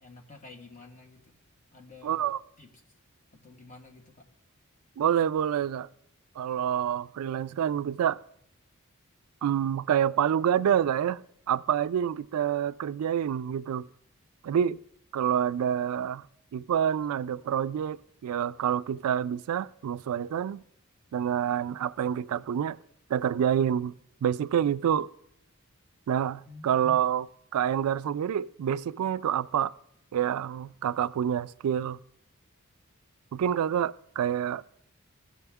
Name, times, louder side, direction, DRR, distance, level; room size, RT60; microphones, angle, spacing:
voice 1, 0.0-1.3 1.7-2.7 3.4-4.2 26.5-27.1, left 3 dB, 35° left, 1.4 m, -50 dB
voice 2, 2.0-2.4 5.0-5.9 6.4-8.2 9.4-11.2 11.5-13.9 14.4-14.8 15.1-16.2 16.5-20.6 21.1-22.8 23.1-23.9 24.2-25.1 26.1-27.3 27.5-29.7 30.1-32.0 33.3-34.6, right 9 dB, 80° right, 0.3 m, -27 dB
16.5 x 6.3 x 3.5 m
head